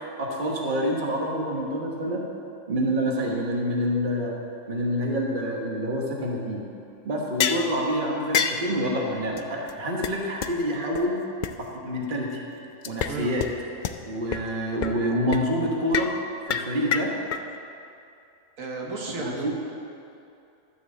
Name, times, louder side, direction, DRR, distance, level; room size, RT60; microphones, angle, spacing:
voice 1, 0.2-2.2 2.7-4.4 4.7-6.6 7.0-11.2 11.6-12.4 12.8-13.4 14.0-16.1 16.5-17.1 19.2-19.5, equal, 40° right, -1 dB, 1.3 m, -27 dB
sound 1, 7.4-7.7 8.3-8.6 9.4-9.5 9.7-9.8 10.0-10.1 10.4-10.5 10.9-11.0 11.4-11.5 12.8-13.1 13.4-13.5 13.8-13.9 14.3-14.4 14.8-15.0 15.3-15.4 15.9-16.1 16.5-17.4, left 8 dB, 80° left, 0.4 m, -26 dB
voice 2, 18.6-19.5, right 3 dB, 85° right, -1 dB, 1.6 m, -33 dB
12.5 x 4.9 x 7.3 m, 2.6 s
omnidirectional pair, 1.4 m